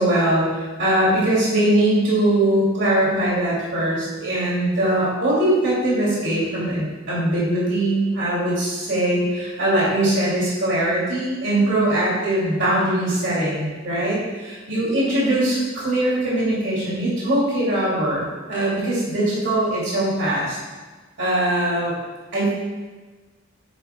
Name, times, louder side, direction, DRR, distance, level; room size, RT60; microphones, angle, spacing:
voice 1, 0.0-20.6 21.2-21.9 22.3-22.5, right 1 dB, 65° right, -6 dB, 2.6 m, -21 dB
9.0 x 8.9 x 2.3 m, 1.3 s
head